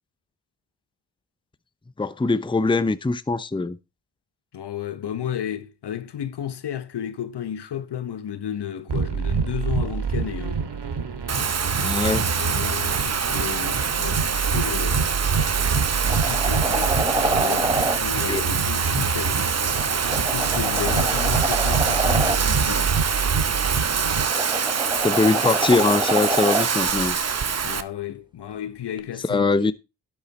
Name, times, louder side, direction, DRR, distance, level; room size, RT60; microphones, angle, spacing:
voice 1, 2.0-3.8 11.8-12.3 18.2-18.4 25.0-27.2 29.3-29.7, left 3 dB, 10° left, 0.7 m, -22 dB
voice 2, 4.5-10.6 12.4-15.2 16.0-19.4 20.2-23.0 27.6-29.7, left 9 dB, 70° left, 1.2 m, -33 dB
sound 1, 8.9-24.2, right 5 dB, 70° right, 2.4 m, -27 dB
Bathtub (filling or washing), 11.3-27.8, right 6 dB, 40° right, 0.9 m, -25 dB
sound 2, 15.3-15.4 15.7-18.0 19.7-22.4 23.9-26.7 29.0-29.1, right 2 dB, 10° right, 1.1 m, -27 dB
12.0 x 7.2 x 4.3 m
cardioid pair, 50°, 42 cm